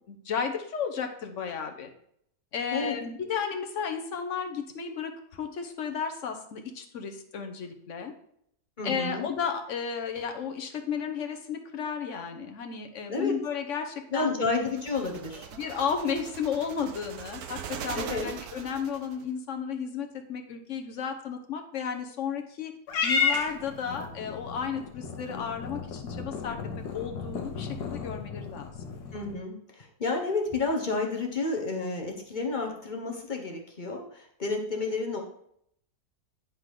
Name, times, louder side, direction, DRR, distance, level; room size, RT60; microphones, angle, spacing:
voice 1, 0.1-1.9 2.5-8.1 8.8-14.3 15.5-22.7 23.0-26.6 26.9-28.7, left 6 dB, 55° left, 5 dB, 1.2 m, -33 dB
voice 2, 8.8-9.3 13.1-13.3 14.1-15.5 17.9-18.3 29.1-35.2, left 3 dB, 35° left, 1 dB, 1.1 m, -30 dB
sound 1, 14.7-19.2, right 8 dB, 75° right, 1.2 m, -41 dB
Purr / Meow, 22.9-29.4, left 5 dB, 85° left, 1.5 m, -33 dB
10.0 x 3.7 x 4.8 m, 0.69 s
omnidirectional pair, 1.7 m